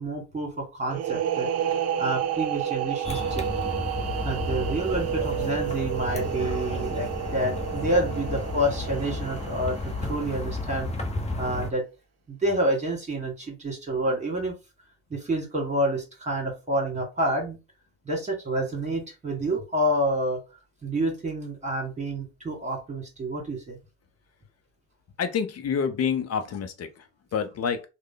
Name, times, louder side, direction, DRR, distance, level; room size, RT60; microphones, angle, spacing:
voice 1, 0.0-3.5 4.2-10.9 11.4-11.8 12.3-14.5 15.1-17.6 18.1-23.8, right 1 dB, 20° right, 2.1 m, -28 dB
sound 1, 0.9-10.4, right 9 dB, 45° right, 0.6 m, -31 dB
sound 2, 3.0-11.7, left 2 dB, 20° left, 0.9 m, -32 dB
voice 2, 25.2-26.9 27.3-27.8, left 6 dB, 40° left, 0.7 m, -27 dB
3.2 x 2.2 x 3.8 m
hypercardioid pair, 65°, 37 cm